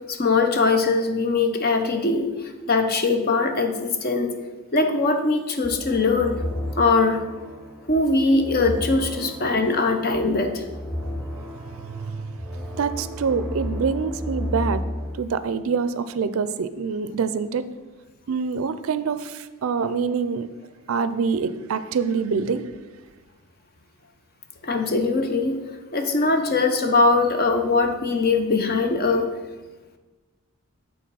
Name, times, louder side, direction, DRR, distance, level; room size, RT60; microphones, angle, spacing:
voice 1, 0.1-4.4 4.7-6.4 6.8-7.2 7.9-10.6 24.6-25.6 25.9-29.3, left 3 dB, 45° left, 5 dB, 0.7 m, -21 dB
sound 1, 5.6-15.1, left 1 dB, 5° right, 1.1 m, -33 dB
voice 2, 11.9-12.4 12.7-14.8 15.2-17.7 18.3-20.5 20.9-22.7, right 5 dB, 70° right, 13 dB, 0.4 m, -25 dB
8.4 x 3.8 x 5.4 m, 1.2 s
head